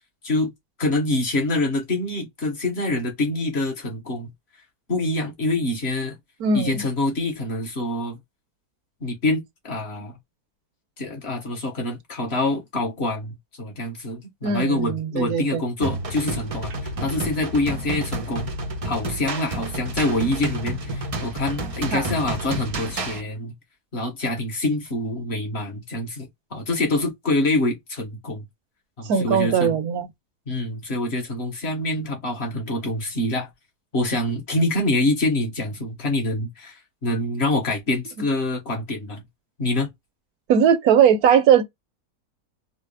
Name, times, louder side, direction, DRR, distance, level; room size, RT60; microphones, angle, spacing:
voice 1, 0.8-4.3 4.9-6.2 6.5-8.2 9.0-10.2 11.0-18.5 18.8-23.5 23.9-28.4 29.0-29.8 30.5-33.5 33.9-39.2 39.6-39.9, left 2 dB, 40° left, 1.5 m, -26 dB
voice 2, 6.4-6.8 14.4-15.6 21.9-22.0 29.0-30.1 40.5-41.6, right 7 dB, 70° right, 1.2 m, -19 dB
sound 1, 15.8-23.2, right 2 dB, 35° right, 0.6 m, -30 dB
4.2 x 2.0 x 3.3 m
omnidirectional pair, 1.8 m